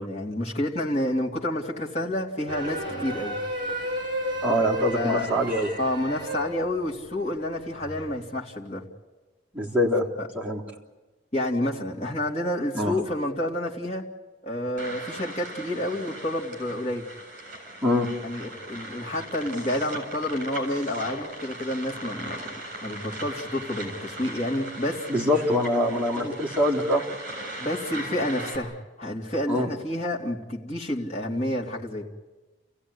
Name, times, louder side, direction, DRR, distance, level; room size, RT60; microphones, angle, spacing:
voice 1, 0.0-3.3 4.9-5.3 5.8-8.8 10.2-10.3 11.3-14.1 14.4-17.0 18.2-22.4 22.8-25.0 26.2-26.3 27.6-28.7 29.0-32.1, left 1 dB, 35° left, -2 dB, 3.0 m, -29 dB
sound 1, 2.5-8.2, equal, 25° right, 7.6 m, -33 dB
voice 2, 4.4-5.7 9.5-10.1 10.3-10.6 12.7-12.9 17.8-18.1 25.1-27.0 29.5-29.7, left 1 dB, 10° right, -5 dB, 3.5 m, -24 dB
sound 2, 14.8-28.6, right 1 dB, 45° right, 7.5 m, -39 dB
30.0 x 16.5 x 9.8 m, 1.2 s
head